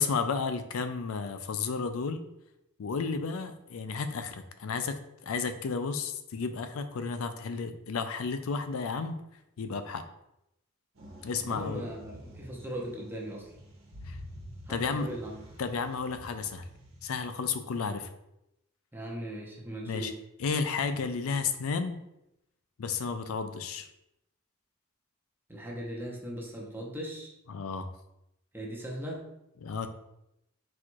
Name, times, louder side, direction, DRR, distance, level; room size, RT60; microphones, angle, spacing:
voice 1, 0.0-2.2 2.8-9.2 9.6-10.0 11.2-11.9 14.1-14.2 14.7-15.1 15.6-16.6 17.0-18.1 19.8-20.1 20.4-22.0 22.8-23.9 27.5-27.9 29.6-29.9, left 5 dB, 80° left, 9 dB, 0.4 m, -32 dB
sound 1, 10.9-17.1, equal, 65° right, 1.2 m, -48 dB
voice 2, 11.4-13.5 14.7-15.4 18.9-20.2 25.5-27.3 28.5-29.2, right 1 dB, 10° right, -3 dB, 0.8 m, -39 dB
4.2 x 2.5 x 4.5 m, 0.85 s
head